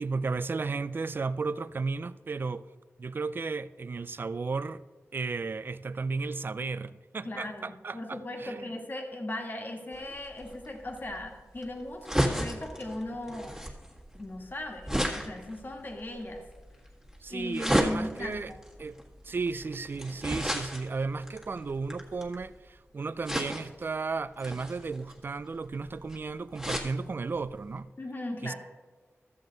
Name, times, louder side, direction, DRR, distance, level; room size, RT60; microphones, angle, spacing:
voice 1, 0.0-2.6 3.0-4.8 5.1-8.7 17.2-18.5 18.8-27.9 28.4-28.5, right 4 dB, 45° right, 0.4 m, -34 dB
voice 2, 7.2-13.6 14.1-16.4 17.3-18.6 28.0-28.5, left 1 dB, 40° left, 1.5 m, -38 dB
sound 1, 9.9-22.5 23.2-23.9 24.4-26.9 27.4-27.5 27.7-27.8, equal, 10° right, 1.7 m, -33 dB
13.5 x 7.5 x 3.9 m
wide cardioid pair, 95°, 5 cm